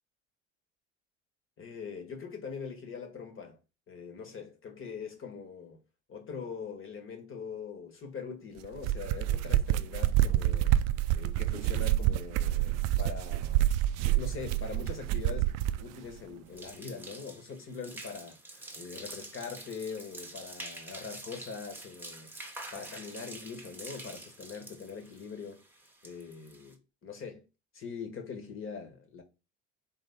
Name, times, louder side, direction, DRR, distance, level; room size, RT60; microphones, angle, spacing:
voice 1, 1.6-3.6 3.9-5.8 6.1-10.8 11.1-13.7 14.0-22.3 22.7-25.6 26.0-27.4 27.7-29.2, left 5 dB, 35° left, 1.5 m, -42 dB
sound 1, 8.6-15.8, right 13 dB, 50° right, 0.4 m, -27 dB
sound 2, 16.5-26.7, right 2 dB, 5° right, 1.1 m, -47 dB
4.2 x 3.6 x 3.6 m
hypercardioid pair, 65°, 35 cm